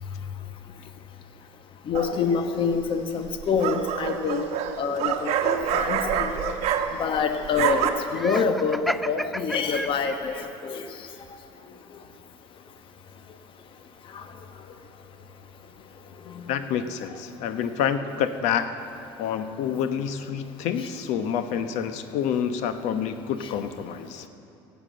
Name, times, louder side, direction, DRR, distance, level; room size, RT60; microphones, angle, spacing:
voice 1, 1.9-4.5 4.8-6.5 7.0-10.3 10.6-10.8, left 5 dB, 40° left, 7 dB, 1.1 m, -26 dB
sound 1, 1.9-2.4 3.3-7.2 7.4-7.9, right 9 dB, 55° right, 1.1 m, -27 dB
Laughter, 8.1-10.4, equal, ahead, 0.3 m, -31 dB
voice 2, 16.5-18.7 19.2-24.2, left 8 dB, 65° left, 10 dB, 0.9 m, -28 dB
16.0 x 8.2 x 7.7 m, 2.6 s
supercardioid pair, 90°, 13 cm